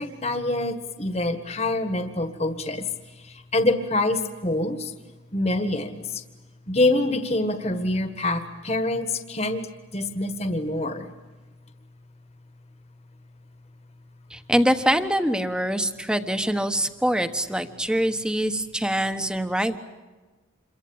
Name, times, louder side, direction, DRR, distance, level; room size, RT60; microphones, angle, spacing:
voice 1, 0.0-2.9 3.2-4.9 5.3-6.2 6.7-9.6 9.9-11.1, left 2 dB, 30° left, 8 dB, 1.6 m, -25 dB
voice 2, 14.3-19.8, equal, 5° right, 9 dB, 1.2 m, -24 dB
28.0 x 23.0 x 8.8 m, 1.3 s
head